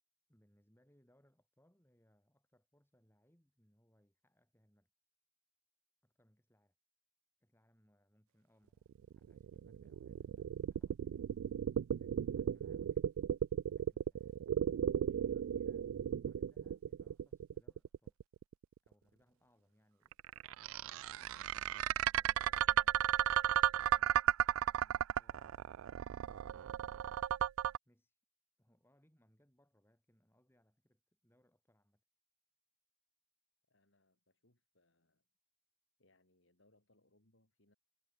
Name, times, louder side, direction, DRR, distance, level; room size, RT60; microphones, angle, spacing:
voice 1, 0.3-4.9 6.0-6.8 7.4-11.6 12.0-13.1 13.6-14.4 15.0-15.9 16.2-18.2 18.8-21.3 22.1-23.0 23.4-24.2 24.7-25.8 26.1-27.2 27.8-28.2 28.6-32.0, equal, 10° left, 5.1 m, -73 dB
sound 1, 8.9-18.8 20.1-27.8, right 10 dB, 85° right, 0.3 m, -35 dB
voice 2, 33.7-35.3 36.0-37.7, left 2 dB, 65° left, 5.1 m, -74 dB
head